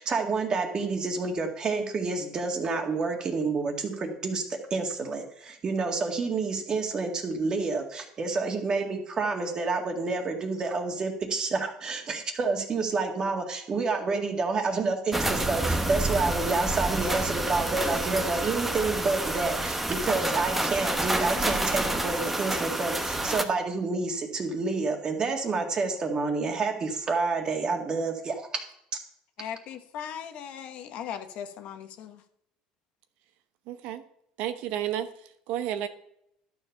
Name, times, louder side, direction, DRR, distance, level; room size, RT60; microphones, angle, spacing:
voice 1, 0.0-28.6, right 4 dB, 30° right, 3 dB, 2.0 m, -29 dB
sound 1, 15.1-23.4, right 1 dB, 10° right, 1.1 m, -28 dB
voice 2, 29.4-32.2, left 8 dB, 55° left, 8 dB, 1.2 m, -38 dB
voice 3, 33.7-34.0 34.4-35.9, right 11 dB, 70° right, 9 dB, 0.9 m, -32 dB
12.0 x 7.2 x 5.7 m, 0.74 s
cardioid pair, 130°, 3 cm